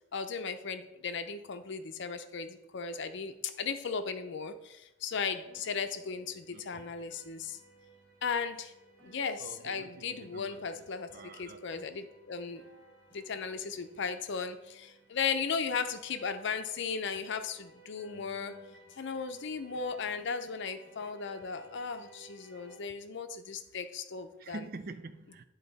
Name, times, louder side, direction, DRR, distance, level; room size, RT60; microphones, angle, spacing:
voice 1, 0.1-7.6 8.2-8.7 9.0-12.6 13.1-18.6 19.0-24.6, left 5 dB, 65° left, 9 dB, 0.6 m, -36 dB
sound 1, 5.4-22.8, right 2 dB, 10° left, 2.9 m, -59 dB
voice 2, 6.5-6.8 9.4-10.7 11.1-11.9 18.1-18.8 20.0-20.1 24.4-25.4, right 3 dB, 50° right, 11 dB, 0.5 m, -47 dB
9.9 x 3.9 x 4.1 m, 0.92 s
head